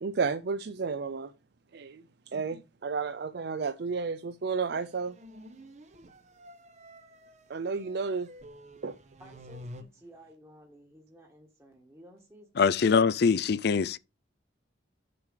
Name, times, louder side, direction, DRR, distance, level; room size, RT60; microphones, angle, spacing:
voice 1, 0.0-1.3 1.7-2.0 2.3-5.2 7.5-8.3 8.8-9.0, right 5 dB, 55° right, 0.5 m, -32 dB
sound 1, 4.7-9.8, equal, 35° right, 1.0 m, -50 dB
voice 2, 9.2-13.1, equal, 15° right, 1.5 m, -54 dB
voice 3, 12.6-14.0, left 5 dB, 55° left, 0.4 m, -23 dB
6.9 x 4.9 x 6.5 m
head